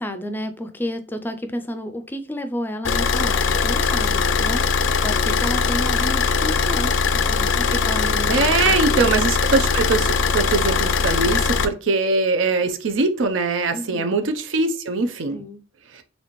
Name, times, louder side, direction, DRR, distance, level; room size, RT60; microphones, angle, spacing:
voice 1, 0.0-9.1 13.7-14.1 15.3-15.6, equal, 10° left, 0.4 m, -31 dB
Car / Idling, 2.8-11.7, left 5 dB, 80° left, 0.4 m, -20 dB
voice 2, 8.3-15.4 15.9-16.0, right 3 dB, 90° right, 0.6 m, -22 dB
4.1 x 3.3 x 3.0 m
head